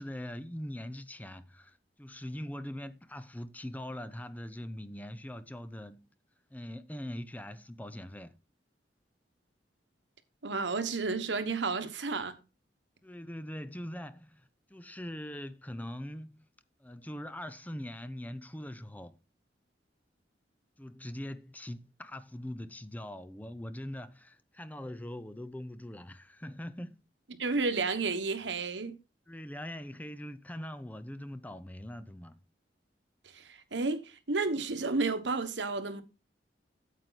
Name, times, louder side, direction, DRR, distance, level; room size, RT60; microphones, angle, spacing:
voice 1, 0.0-6.1 6.5-8.3 13.0-16.4 16.8-19.2 20.8-27.0 29.3-32.4, left 1 dB, 10° left, 0.6 m, -42 dB
voice 2, 10.4-12.4 27.4-29.0 33.2-36.0, right 3 dB, 85° right, 1.3 m, -31 dB
9.0 x 8.0 x 4.0 m
head